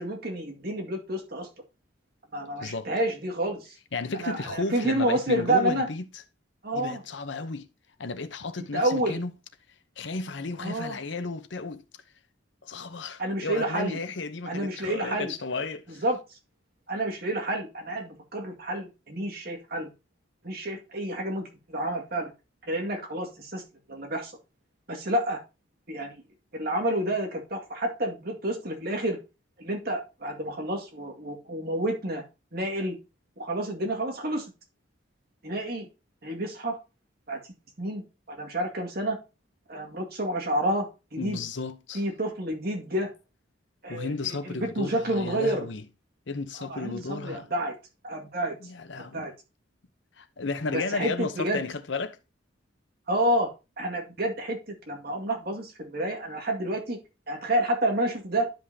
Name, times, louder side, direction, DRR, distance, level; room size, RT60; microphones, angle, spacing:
voice 1, 0.0-1.5 2.3-3.7 4.2-5.9 6.6-7.0 8.7-9.2 10.6-11.0 13.2-14.0 14.5-15.3 15.9-16.2 16.9-19.9 20.4-22.3 22.7-23.6 23.9-24.3 24.9-25.4 25.9-26.2 26.5-29.2 29.6-32.2 32.5-32.9 33.4-34.5 35.4-35.9 36.2-36.8 37.3-37.4 37.8-38.0 38.3-39.2 39.7-40.9 41.1-41.4 41.9-43.1 43.8-45.7 46.6-47.8 48.0-48.6 49.1-49.3 50.7-51.6 53.1-53.5 53.8-57.0 57.3-58.5, right 1 dB, 50° right, 2.1 m, -29 dB
voice 2, 2.6-2.9 3.9-6.0 6.7-7.7 8.0-9.3 10.0-11.8 12.6-16.0 41.2-42.0 43.9-45.8 46.3-47.5 48.6-49.3 50.2-52.2, left 3 dB, 65° left, 0.8 m, -33 dB
11.5 x 5.5 x 2.8 m
head